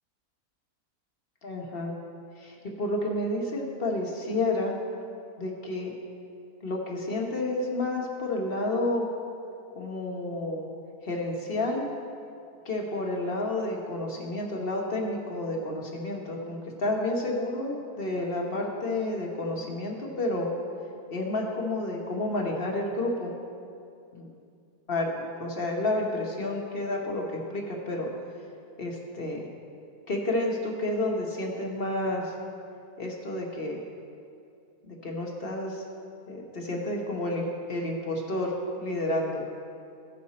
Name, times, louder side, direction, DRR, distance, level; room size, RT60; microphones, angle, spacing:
voice 1, 1.4-2.0 2.4-4.7 5.4-5.9 6.6-9.1 9.7-10.7 11.0-11.8 12.6-20.5 21.1-23.3 24.1-24.3 24.9-25.1 25.4-28.1 28.8-29.5 30.1-32.3 33.0-33.8 34.8-35.8 36.3-39.4, left 2 dB, 40° left, 0 dB, 1.3 m, -30 dB
15.5 x 5.9 x 4.2 m, 2.4 s
omnidirectional pair, 1.7 m